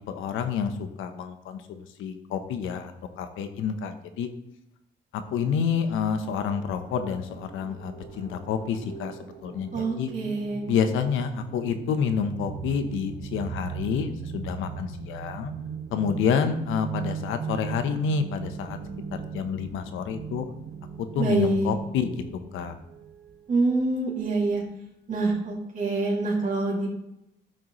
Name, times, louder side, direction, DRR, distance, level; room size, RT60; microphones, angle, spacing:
voice 1, 0.1-2.9 3.2-4.3 5.1-10.1 10.7-15.5 15.9-18.8 19.3-20.5 21.0-22.2 22.5-22.8, left 7 dB, 85° left, 9 dB, 0.9 m, -28 dB
sound 1, 6.2-23.4, right 7 dB, 80° right, 1.6 m, -39 dB
voice 2, 9.7-10.6 21.2-21.7 23.5-24.6 25.1-26.9, right 3 dB, 40° right, -4 dB, 2.4 m, -26 dB
13.0 x 6.2 x 3.1 m, 0.85 s
cardioid pair, 90°, 20 cm